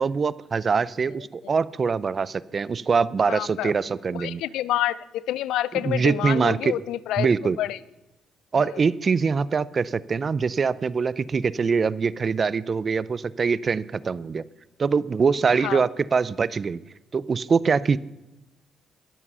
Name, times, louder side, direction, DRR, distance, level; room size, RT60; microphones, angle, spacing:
voice 1, 0.0-4.4 5.8-6.7 7.2-7.6 8.5-14.4 14.8-16.8 17.1-18.0, right 5 dB, 40° right, 20 dB, 0.5 m, -23 dB
voice 2, 3.3-3.7 4.1-7.8 8.5-8.8 15.5-15.9, left 13 dB, 90° left, 20 dB, 0.4 m, -28 dB
21.0 x 7.5 x 5.6 m, 0.96 s
cardioid pair, 90°, 0 cm